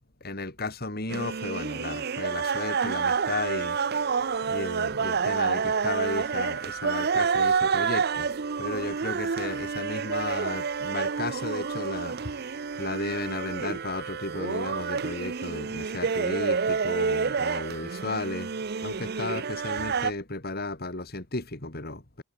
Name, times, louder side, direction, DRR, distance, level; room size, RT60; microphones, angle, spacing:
voice 1, 0.2-8.3 8.6-18.5 18.8-22.2, left 2 dB, 50° left, 2.7 m, -34 dB
sound 1, 1.1-20.1, right 5 dB, 50° right, 0.6 m, -29 dB
head